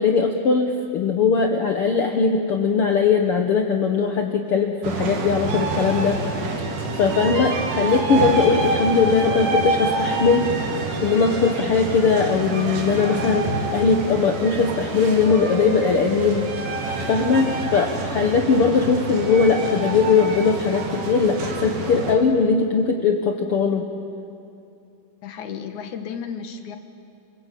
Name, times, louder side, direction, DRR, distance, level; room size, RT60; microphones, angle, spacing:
voice 1, 0.0-10.5 11.0-16.5 17.1-23.9, left 5 dB, 80° left, 4 dB, 1.2 m, -20 dB
sound 1, 4.8-22.2, right 3 dB, 60° right, 3.9 m, -27 dB
voice 2, 25.2-26.8, left 7 dB, 60° left, 7 dB, 2.5 m, -33 dB
29.0 x 21.0 x 8.4 m, 2.6 s
omnidirectional pair, 4.4 m